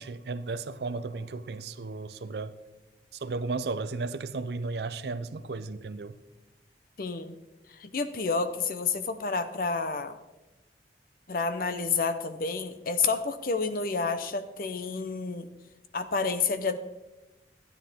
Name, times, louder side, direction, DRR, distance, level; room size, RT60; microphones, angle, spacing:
voice 1, 0.0-2.6 3.2-6.2, right 3 dB, 65° right, 0.5 m, -34 dB
voice 2, 7.0-7.4 7.8-10.2 11.3-15.5 15.9-16.8, left 4 dB, 50° left, 0.7 m, -29 dB
12.5 x 9.7 x 3.6 m
head